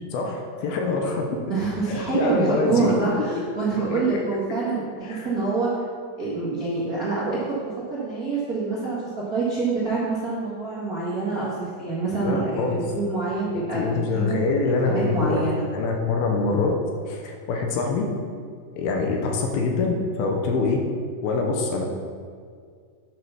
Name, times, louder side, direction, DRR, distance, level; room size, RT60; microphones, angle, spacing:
voice 1, 0.1-1.4 1.9-2.9 3.9-4.2 5.1-5.3 12.1-12.8 13.5-15.4 15.7-16.7 17.1-18.1 18.7-20.8 21.2-21.8, left 4 dB, 75° left, 1 dB, 2.7 m, -25 dB
voice 2, 1.5-5.7 6.2-9.0 9.3-14.5 14.8-15.7, right 3 dB, 50° right, -8 dB, 1.0 m, -26 dB
9.1 x 5.7 x 5.8 m, 2.1 s
omnidirectional pair, 4.6 m